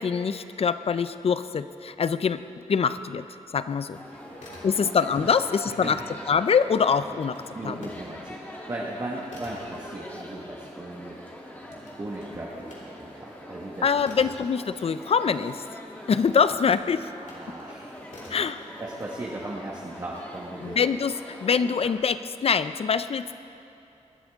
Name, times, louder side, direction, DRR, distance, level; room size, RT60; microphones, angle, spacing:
voice 1, 0.0-2.4 2.7-3.2 3.5-4.0 4.6-6.0 6.3-7.4 7.6-7.8 13.8-15.6 16.1-17.1 18.3-18.6 20.6-23.3, left 6 dB, 55° left, 13 dB, 0.5 m, -24 dB
sound 1, 3.9-21.9, equal, 15° left, 1.6 m, -43 dB
sound 2, 4.4-5.2 5.5-8.0 8.4-15.4 16.0-17.5 18.1-18.6, left 1 dB, 80° left, 2.8 m, -50 dB
voice 2, 4.5-4.9 5.2-5.3 5.6-6.0 7.5-11.2 12.0-13.9 17.1-17.9 18.8-20.8 21.8-21.9, right 1 dB, 30° right, -4 dB, 1.3 m, -37 dB
20.0 x 11.5 x 3.6 m, 2.8 s
wide cardioid pair, 110°, 12 cm